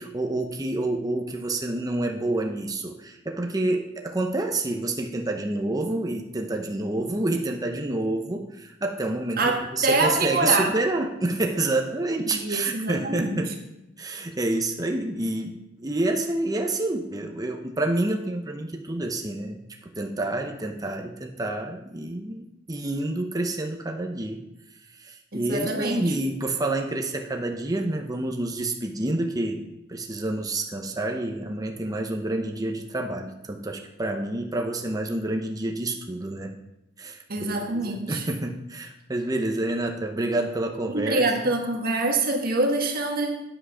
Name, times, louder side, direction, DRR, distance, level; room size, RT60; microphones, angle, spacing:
voice 1, 0.0-13.5 14.0-24.4 25.0-29.6 29.9-36.6 37.0-41.5, right 2 dB, 20° right, 2 dB, 0.8 m, -28 dB
voice 2, 9.4-10.7 12.4-13.4 25.3-26.1 37.3-38.2 40.9-43.4, right 2 dB, 50° right, 3 dB, 1.5 m, -25 dB
8.9 x 7.5 x 5.6 m, 0.88 s
head